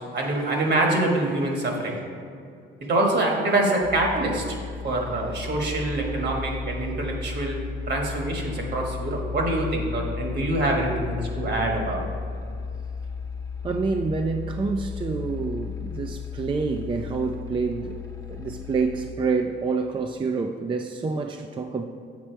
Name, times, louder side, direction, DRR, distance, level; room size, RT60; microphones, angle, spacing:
voice 1, 0.1-2.0 2.8-4.4 4.8-12.0, right 2 dB, 55° right, 1 dB, 1.4 m, -25 dB
sound 1, 3.8-19.1, left 5 dB, 15° left, 0.7 m, -34 dB
voice 2, 13.6-18.0 18.3-21.8, right 4 dB, 25° right, 5 dB, 0.3 m, -27 dB
7.5 x 4.3 x 4.5 m, 2.4 s
cardioid pair, 90°, 20 cm